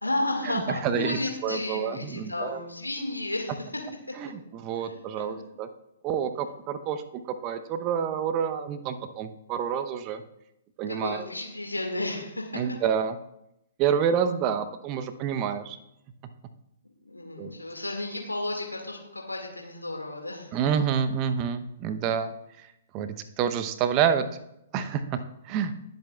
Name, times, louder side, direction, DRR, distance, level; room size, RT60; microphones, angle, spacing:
voice 1, 0.0-4.3 4.8-5.4 10.9-12.8 17.0-20.6, left 2 dB, 85° left, 2 dB, 2.0 m, -33 dB
voice 2, 0.7-2.6 4.2-5.7 6.0-10.2 10.8-11.2 12.5-13.2 13.8-15.8 17.4-17.5 20.5-22.3 22.9-24.2 24.7-25.2 25.5-25.7, right 8 dB, 30° right, 10 dB, 0.8 m, -28 dB
19.5 x 7.9 x 2.4 m, 0.83 s
figure-of-eight pair, 115°, 0 cm